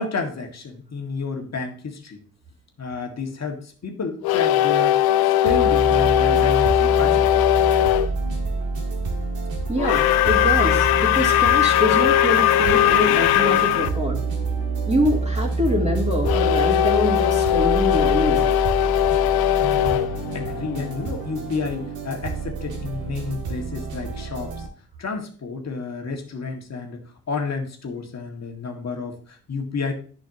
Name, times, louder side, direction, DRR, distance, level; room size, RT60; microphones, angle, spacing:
voice 1, 0.0-2.2 2.8-5.0 5.4-7.2 19.6-24.7 25.0-29.9, left 4 dB, 40° left, 3 dB, 1.9 m, -30 dB
sound 1, 4.2-8.1 9.8-13.9 16.2-21.1, left 12 dB, 65° left, 0.6 m, -19 dB
sound 2, 5.5-24.7, right 3 dB, 65° right, 1.8 m, -28 dB
voice 2, 9.7-14.2 14.9-18.5, left 1 dB, 15° right, -2 dB, 2.9 m, -25 dB
10.5 x 5.8 x 2.8 m, 0.43 s
hypercardioid pair, 50°, 40 cm